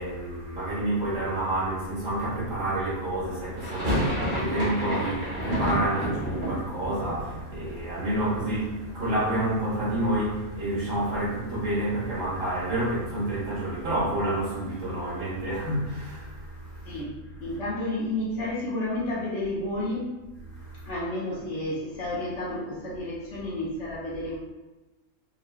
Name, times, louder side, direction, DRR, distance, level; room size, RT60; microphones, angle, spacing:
voice 1, 0.0-17.0 17.4-17.6 20.5-20.9, right 1 dB, 60° right, -8 dB, 1.6 m, -29 dB
sound 1, 3.6-9.5 9.8-10.6 10.9-11.0 11.2-13.4, equal, 40° right, 1.0 m, -32 dB
voice 2, 17.4-20.2 20.9-24.4, left 1 dB, 60° left, -6 dB, 0.9 m, -31 dB
3.7 x 2.1 x 2.2 m, 1.1 s
omnidirectional pair, 1.6 m